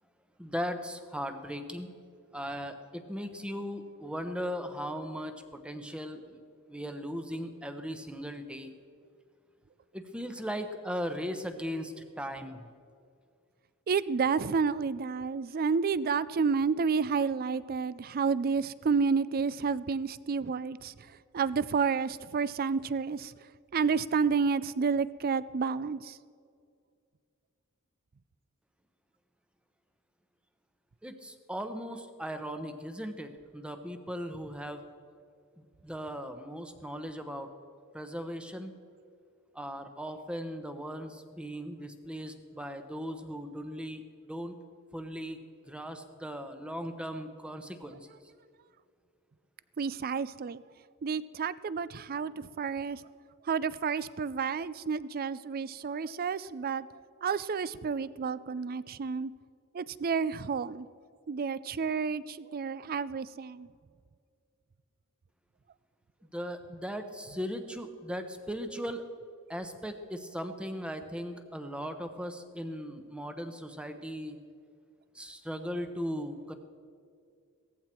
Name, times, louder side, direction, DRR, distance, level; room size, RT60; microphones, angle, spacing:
voice 1, 0.4-1.9 2.3-6.4 6.7-8.7 9.9-12.7 31.0-34.8 35.6-37.5 37.9-38.7 39.5-44.6 44.9-45.4 45.6-48.2 66.3-69.0 69.5-74.4 75.1-76.5, equal, 5° right, 7 dB, 0.9 m, -38 dB
voice 2, 13.9-20.9 21.3-23.3 23.7-26.2 49.8-50.6 51.0-53.0 53.5-56.9 57.2-59.3 59.7-60.9 61.3-63.7, right 5 dB, 40° right, 18 dB, 0.4 m, -30 dB
17.5 x 14.5 x 4.5 m, 2.2 s
head